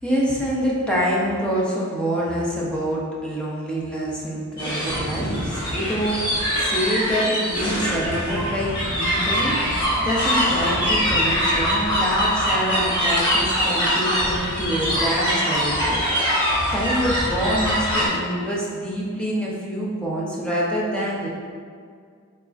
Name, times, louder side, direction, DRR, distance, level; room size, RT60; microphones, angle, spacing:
voice 1, 0.0-16.0 16.3-16.4 16.7-21.3, equal, 5° left, -5 dB, 0.6 m, -26 dB
sound 1, 4.6-18.1, equal, 25° left, 1.0 m, -23 dB
4.0 x 3.7 x 2.4 m, 2.1 s
head